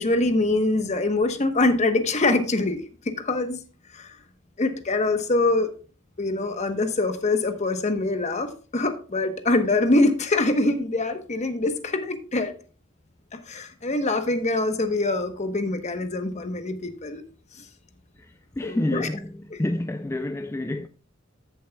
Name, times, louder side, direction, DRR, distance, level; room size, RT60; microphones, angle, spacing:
voice 1, 0.0-3.6 3.9-4.2 4.6-5.7 6.2-12.5 13.3-17.2 17.6-17.7 18.6-19.1 19.5-19.6, left 2 dB, 35° left, 1.0 m, -24 dB
voice 2, 18.2-20.9, left 1 dB, 15° left, 0.4 m, -29 dB
14.0 x 7.4 x 2.3 m
head